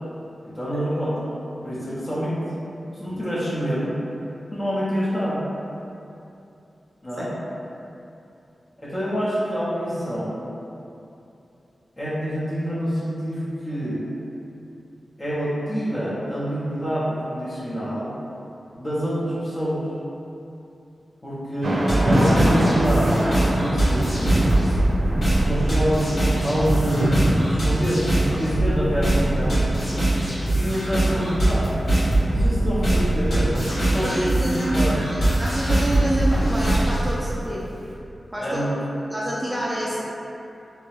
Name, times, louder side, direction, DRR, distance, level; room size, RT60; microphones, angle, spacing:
voice 1, 0.4-1.2 1.6-2.4 2.9-4.0 4.5-5.5 7.0-7.3 8.8-10.5 12.0-14.0 15.2-18.1 18.7-19.9 21.2-24.6 25.4-27.2 27.5-29.8 30.5-31.7 32.2-35.0 38.4-38.8, equal, 25° left, -8 dB, 0.7 m, -26 dB
Thunder / Rain, 21.6-37.6, equal, 85° right, 0.5 m, -27 dB
sound 1, 21.9-37.1, right 1 dB, 70° left, 1.3 m, -22 dB
voice 2, 34.0-37.6 38.3-38.6 39.1-40.1, right 1 dB, 15° right, -6 dB, 0.3 m, -28 dB
2.9 x 2.3 x 3.1 m, 2.8 s
wide cardioid pair, 105°, 0 cm